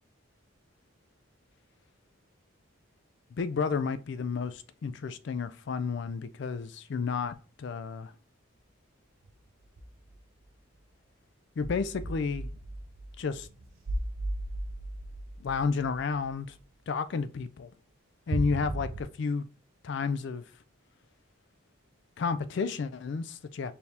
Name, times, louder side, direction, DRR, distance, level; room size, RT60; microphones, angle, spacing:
voice 1, 3.3-8.1 11.6-12.5 13.2-13.5 15.4-16.6 16.9-17.7 18.3-19.5 19.8-20.5 22.2-23.7, left 5 dB, 55° left, 0.3 m, -31 dB
sound 1, 9.3-9.4 9.6-10.2 10.4-10.5 11.6-16.6 18.3-19.0, right 1 dB, 70° right, 0.6 m, -36 dB
4.5 x 2.8 x 3.4 m
head